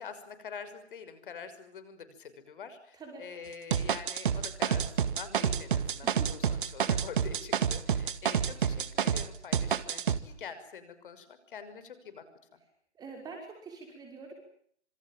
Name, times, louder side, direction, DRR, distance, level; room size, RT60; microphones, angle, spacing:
voice 1, 0.0-12.2 12.5-12.6, left 6 dB, 50° left, 11 dB, 6.1 m, -46 dB
voice 2, 2.9-3.3 6.0-6.3 13.0-14.3, right 4 dB, 10° right, 2 dB, 5.8 m, -45 dB
sound 1, 3.7-9.3 9.5-10.2, right 8 dB, 45° right, 2.1 m, -28 dB
27.5 x 27.0 x 7.6 m, 0.64 s
figure-of-eight pair, 140°, 35 cm